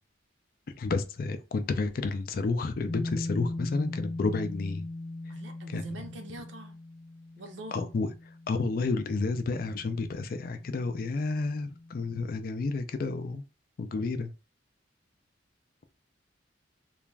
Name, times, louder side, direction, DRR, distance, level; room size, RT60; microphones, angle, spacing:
voice 1, 0.7-4.8 5.7-6.1 7.7-8.1 8.5-13.4 13.8-14.3, left 3 dB, 50° left, 0.4 m, -31 dB
sound 1, 2.9-12.3, left 2 dB, 15° left, 0.7 m, -40 dB
voice 2, 5.3-6.8 7.4-7.9, right 2 dB, 75° right, 0.6 m, -44 dB
2.4 x 2.2 x 3.1 m
head